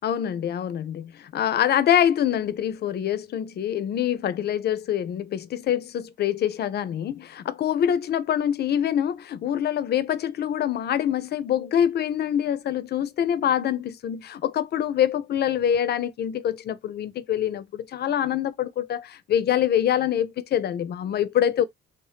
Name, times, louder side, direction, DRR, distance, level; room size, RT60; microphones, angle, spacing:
voice 1, 0.0-21.6, left 10 dB, 55° left, 0.5 m, -25 dB
2.7 x 2.1 x 3.3 m
cardioid pair, 90°, 20 cm